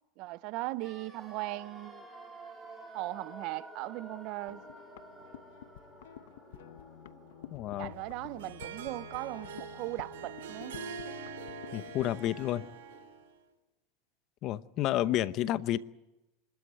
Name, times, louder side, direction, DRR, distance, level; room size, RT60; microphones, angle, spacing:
voice 1, 0.2-2.0 2.9-4.6 7.8-10.8, right 19 dB, 50° right, 0.7 m, -38 dB
sound 1, 0.8-10.7 11.0-11.1, right 2 dB, 5° right, 4.3 m, -52 dB
sound 2, 4.5-12.8, left 10 dB, 80° left, 0.9 m, -50 dB
voice 2, 7.5-7.9 11.7-12.6 14.4-15.8, left 13 dB, 40° left, 0.8 m, -30 dB
Harp, 8.0-13.3, right 6 dB, 80° right, 3.3 m, -44 dB
25.0 x 13.0 x 9.6 m
supercardioid pair, 135°, 0 cm